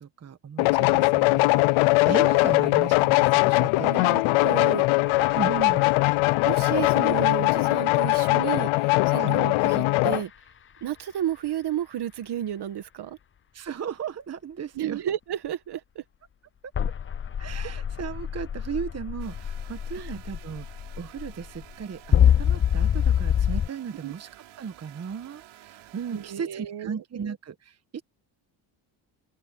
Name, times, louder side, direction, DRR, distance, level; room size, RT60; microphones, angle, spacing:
voice 1, 0.0-4.2 5.3-5.9 9.2-9.3 13.5-15.0 17.4-24.3 24.6-28.0, right 7 dB, 30° right, 1.4 m, -36 dB
sound 1, 0.6-10.2, left 22 dB, 75° left, 0.6 m, -21 dB
voice 2, 3.8-4.9 6.4-10.3 10.8-13.2 14.7-16.0 19.9-20.2 24.0-24.1 26.1-27.3, right 11 dB, 50° right, 1.7 m, -32 dB
sound 2, 5.0-7.6 10.1-10.2 16.7-23.7, left 9 dB, 25° left, 0.6 m, -26 dB
sound 3, 19.2-26.4, right 14 dB, 70° right, 6.9 m, -51 dB
open air
cardioid pair, 110°, 49 cm